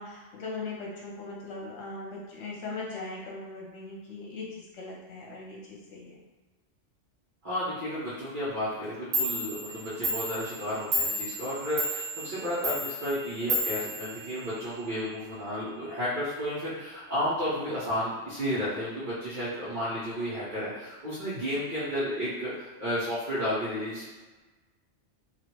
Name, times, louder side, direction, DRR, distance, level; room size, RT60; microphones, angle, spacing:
voice 1, 0.0-6.2, left 3 dB, 90° left, -3 dB, 1.2 m, -39 dB
voice 2, 7.4-24.1, equal, 40° right, -13 dB, 1.3 m, -32 dB
Clock, 8.8-8.9 9.1-14.8, equal, 70° right, 1.4 m, -32 dB
3.2 x 2.8 x 3.0 m, 1.2 s
omnidirectional pair, 1.3 m